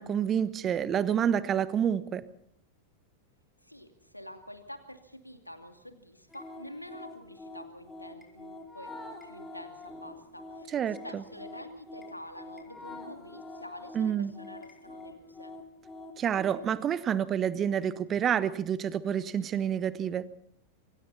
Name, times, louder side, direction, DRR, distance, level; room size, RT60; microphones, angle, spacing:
voice 1, 0.0-2.2 10.7-11.2 13.9-14.3 16.2-20.3, right 8 dB, 25° right, 16 dB, 1.1 m, -28 dB
voice 2, 3.6-9.0 9.2-10.7 11.0-15.5, left 1 dB, 85° left, 7 dB, 2.6 m, -47 dB
sound 1, 6.3-16.7, left 2 dB, 10° left, 4.8 m, -46 dB
27.0 x 24.5 x 4.2 m, 0.67 s
figure-of-eight pair, 90°, 0 cm